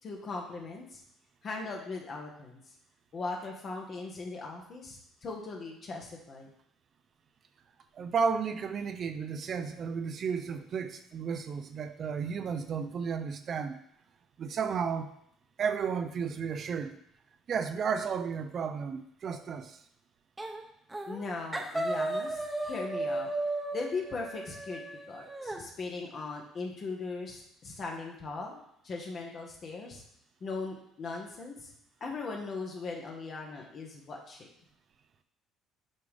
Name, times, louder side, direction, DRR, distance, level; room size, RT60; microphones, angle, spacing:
voice 1, 0.0-1.0 1.4-2.6 3.1-6.5 21.1-23.3 23.7-24.8 25.1-30.0 30.4-31.7 32.0-34.5, left 3 dB, 45° left, 0 dB, 1.1 m, -39 dB
voice 2, 7.9-13.8 14.4-15.1 15.6-17.0 17.5-19.8, right 6 dB, 50° right, 9 dB, 0.4 m, -33 dB
sound 1, 20.4-20.6 20.9-21.2 21.5-25.6, right 2 dB, 15° right, 1.0 m, -35 dB
7.9 x 3.6 x 3.6 m, 0.73 s
hypercardioid pair, 60°, 0 cm